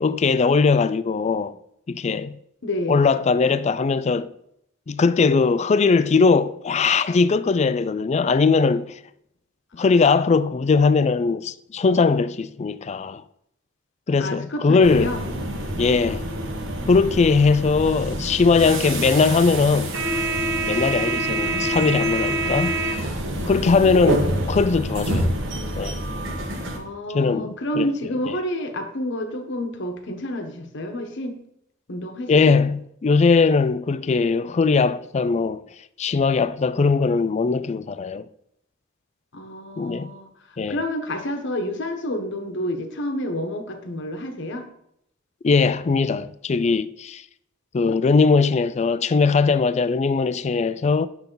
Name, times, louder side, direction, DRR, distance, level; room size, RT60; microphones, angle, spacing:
voice 1, 0.0-1.6 1.9-2.4 2.9-4.3 4.9-8.9 9.7-13.2 14.1-15.1 15.8-16.3 16.9-20.0 20.7-22.8 23.5-25.3 25.8-26.0 27.1-27.9 32.3-35.6 36.0-38.3 39.8-40.1 40.6-40.8 45.4-47.2 47.7-51.1, left 4 dB, 35° left, 0.4 m, -20 dB
voice 2, 2.6-3.0 14.2-15.2 23.8-24.2 26.7-31.4 31.9-32.6 39.3-44.7, left 1 dB, 60° left, 1.1 m, -29 dB
sound 1, 14.8-26.8, right 1 dB, 65° right, 1.5 m, -26 dB
9.1 x 6.9 x 3.9 m
head